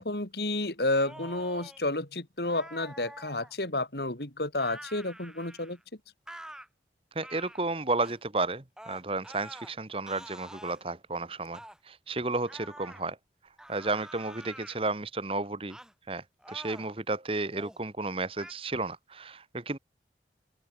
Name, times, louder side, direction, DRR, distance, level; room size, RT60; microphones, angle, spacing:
voice 1, 0.0-5.8, left 2 dB, 65° left, 3.7 m, -31 dB
sound 1, 0.9-1.8 2.4-3.5 4.6-5.8 6.3-6.7 7.2-7.6 8.0-8.2 8.8-9.7 10.1-10.8 11.5-11.8 12.5-13.0 13.6-14.8 15.7-15.9 16.4-16.9 17.5-17.8 18.4-18.5, right 1 dB, 5° right, 7.8 m, -47 dB
voice 2, 7.1-11.6 11.9-13.2 13.7-15.8 16.1-19.8, right 3 dB, 30° right, 1.3 m, -32 dB
open air
head